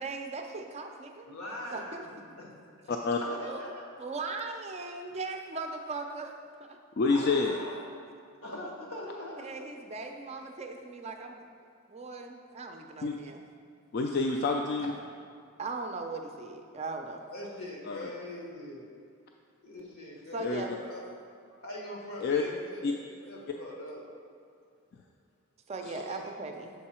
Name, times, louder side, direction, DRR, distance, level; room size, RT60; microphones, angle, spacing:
voice 1, 0.0-1.3 1.7-2.0 3.4-3.6 4.0-6.3 6.6-6.8 9.4-11.4 11.9-13.4 15.6-17.2 20.3-20.7 25.7-26.7, right 3 dB, 30° right, 4 dB, 0.4 m, -38 dB
voice 2, 1.2-2.5 3.2-3.9 7.0-7.8 8.4-9.5 17.3-18.8 19.6-21.1 21.5-22.9 23.2-24.0 25.9-26.2, left 1 dB, 85° left, -2 dB, 1.3 m, -42 dB
voice 3, 2.9-3.2 7.0-7.6 13.0-13.2 13.9-14.9 17.9-18.1 20.4-20.6 22.2-22.4 22.8-22.9, left 4 dB, 50° left, 2 dB, 0.3 m, -28 dB
6.7 x 4.6 x 4.3 m, 2.4 s
head